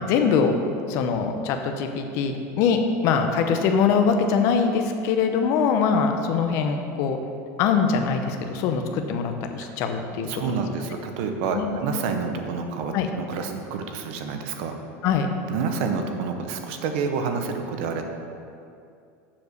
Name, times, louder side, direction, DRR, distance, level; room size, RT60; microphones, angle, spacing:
voice 1, 0.1-0.5 0.9-7.2 7.6-10.3 11.5-11.8 12.9-13.1 15.0-15.3, left 6 dB, 45° left, 5 dB, 0.7 m, -23 dB
voice 2, 10.3-14.8 15.5-18.0, right 5 dB, 55° right, 5 dB, 0.7 m, -28 dB
7.2 x 4.8 x 6.5 m, 2.5 s
cardioid pair, 175°, 7 cm